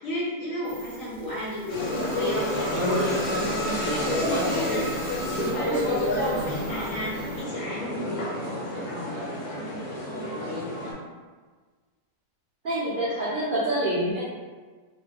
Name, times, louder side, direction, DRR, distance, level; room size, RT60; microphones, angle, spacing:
voice 1, 0.0-4.9 5.3-9.3 10.2-10.7, left 1 dB, 60° left, -7 dB, 1.2 m, -33 dB
sound 1, 0.6-7.4, equal, 55° right, 1.0 m, -45 dB
sound 2, 1.7-10.9, left 1 dB, 80° left, 1.4 m, -29 dB
voice 2, 12.6-14.2, right 1 dB, 70° right, -9 dB, 0.4 m, -26 dB
3.1 x 2.2 x 3.4 m, 1.4 s
omnidirectional pair, 1.8 m